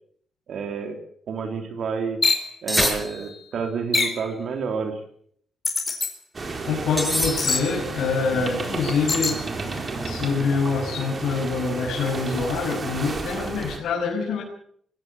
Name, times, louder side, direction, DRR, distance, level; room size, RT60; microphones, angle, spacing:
voice 1, 0.5-1.0 1.3-2.2 2.6-5.0, right 5 dB, 65° right, 5 dB, 3.5 m, -29 dB
sound 1, 2.2-2.5 3.9-4.2 5.6-6.1 7.4-7.7 9.1-9.4, left 4 dB, 30° left, 4.3 m, -23 dB
sound 2, 2.7-3.6 7.0-7.9, equal, ahead, 6.5 m, -26 dB
sound 3, 6.3-13.8, right 3 dB, 35° right, 4.4 m, -32 dB
voice 2, 6.7-9.4 10.0-14.4, left 5 dB, 85° left, -3 dB, 6.5 m, -25 dB
21.5 x 16.0 x 8.0 m, 0.64 s
cardioid pair, 120°, 0 cm